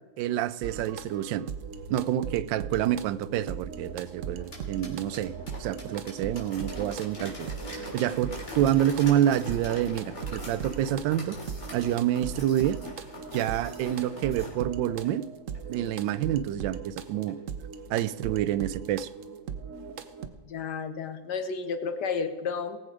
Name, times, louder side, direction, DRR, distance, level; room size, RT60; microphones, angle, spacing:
voice 1, 0.2-1.5 1.9-5.3 5.6-11.4 11.7-12.8 13.3-15.3 15.7-17.4 17.9-19.1, right 11 dB, 80° right, 15 dB, 1.3 m, -28 dB
sound 1, 0.6-20.3, right 6 dB, 55° right, 1.0 m, -39 dB
sound 2, 4.3-14.5 15.0-15.1 15.5-15.6 16.2-16.3 16.7-16.8 17.3-17.4, left 1 dB, 35° left, 3.3 m, -43 dB
voice 2, 20.5-22.8, left 5 dB, 65° left, 10 dB, 1.4 m, -32 dB
19.0 x 7.9 x 4.8 m, 1.3 s
omnidirectional pair, 2.0 m